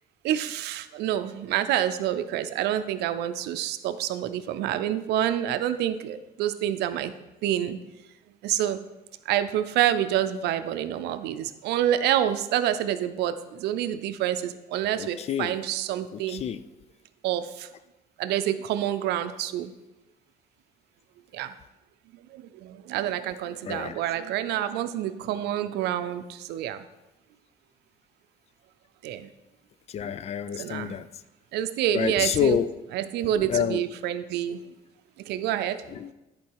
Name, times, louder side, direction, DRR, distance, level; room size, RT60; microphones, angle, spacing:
voice 1, 0.2-7.1 7.4-7.8 8.4-8.8 9.3-16.4 17.2-17.7 18.2-19.7 21.3-21.5 22.3-26.8 29.0-29.3 30.6-31.0 31.5-34.6 35.3-36.0, right 11 dB, 80° right, 0.5 m, -27 dB
voice 2, 15.0-15.6 16.1-16.6 23.7-24.0 29.9-31.1 31.9-32.7 33.4-33.8 35.9-36.1, left 8 dB, 40° left, 0.4 m, -28 dB
10.5 x 4.5 x 4.7 m
cardioid pair, 110°, 17 cm